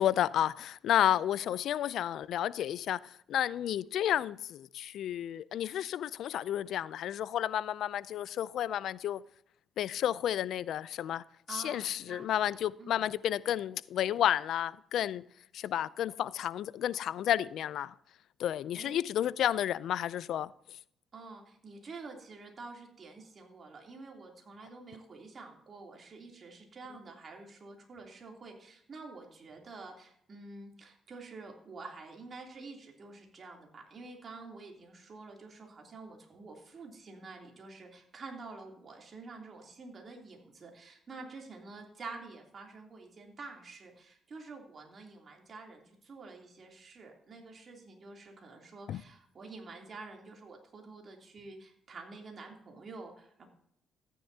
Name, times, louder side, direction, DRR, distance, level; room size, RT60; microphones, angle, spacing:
voice 1, 0.0-9.2 9.8-11.2 11.5-15.2 15.5-17.9 18.4-20.5 48.9-49.0, left 11 dB, 75° left, 0.4 m, -31 dB
voice 2, 11.5-12.5 12.8-13.0 18.7-19.0 21.1-53.5, right 3 dB, 45° right, 3.1 m, -48 dB
14.0 x 10.0 x 2.8 m
cardioid pair, 90°, 0 cm